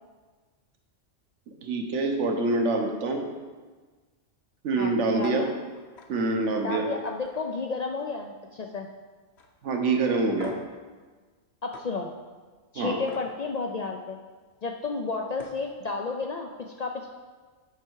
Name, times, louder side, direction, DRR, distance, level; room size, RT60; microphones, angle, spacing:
voice 1, 1.6-3.2 4.6-5.5 6.1-6.9 9.6-10.5 12.7-13.0, right 3 dB, 70° right, 3 dB, 1.3 m, -25 dB
voice 2, 4.8-5.5 6.6-8.9 11.6-12.1 12.7-14.2 14.6-17.1, left 4 dB, 75° left, 3 dB, 0.3 m, -32 dB
sound 1, 5.2-5.4 5.7-6.1 6.5-6.7 7.1-8.2 8.5-8.9 9.4-9.5 10.4-10.8 11.7-11.9 13.1-13.3 15.0-15.1 15.3-15.6, left 4 dB, 60° left, 1.1 m, -46 dB
8.1 x 5.6 x 4.6 m, 1.4 s
omnidirectional pair, 1.3 m